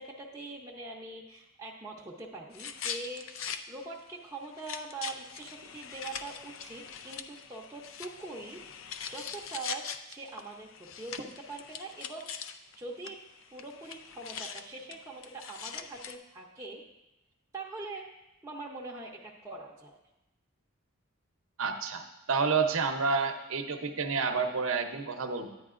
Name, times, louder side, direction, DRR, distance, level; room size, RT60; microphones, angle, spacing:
voice 1, 0.0-8.6 9.1-10.7 11.0-11.2 11.5-12.3 12.8-13.2 13.5-16.8 17.5-18.1 18.4-20.0, right 3 dB, 15° right, -3 dB, 0.7 m, -43 dB
sound 1, 2.5-3.6 4.0-4.1 4.4-12.7 13.0-13.1 13.4-16.2, left 7 dB, 65° left, 0.4 m, -42 dB
voice 2, 21.6-22.0 22.3-25.5, right 5 dB, 70° right, 6 dB, 0.7 m, -29 dB
9.9 x 9.4 x 2.5 m, 0.93 s
head